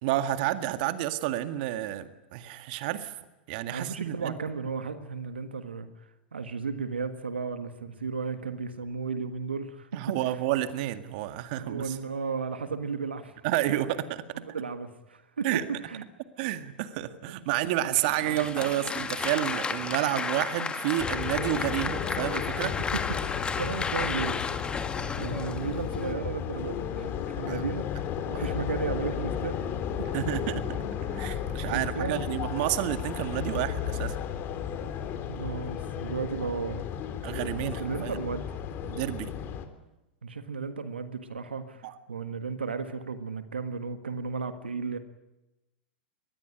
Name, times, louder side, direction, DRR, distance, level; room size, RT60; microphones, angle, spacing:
voice 1, 0.0-3.1 3.5-4.4 9.9-12.0 13.4-14.3 15.4-15.7 16.4-22.8 27.5-27.6 28.2-28.5 30.1-30.8 31.0-34.2 37.2-38.2 38.9-39.3 41.8-41.9, right 13 dB, 55° right, 10 dB, 2.0 m, -30 dB
voice 2, 3.7-5.9 6.3-10.4 11.6-13.3 14.4-16.0 16.4-16.5 18.3-18.4 22.6-22.7 23.1-24.5 25.2-27.9 28.4-29.6 31.6-32.3 35.3-36.8 37.8-38.6 40.2-45.0, right 5 dB, 85° right, 9 dB, 1.7 m, -34 dB
Applause, 18.0-26.1, left 5 dB, 15° left, 2.0 m, -33 dB
sound 1, 21.0-39.6, left 8 dB, 40° left, 3.4 m, -34 dB
23.5 x 20.5 x 10.0 m, 0.98 s
hypercardioid pair, 100°, 6 cm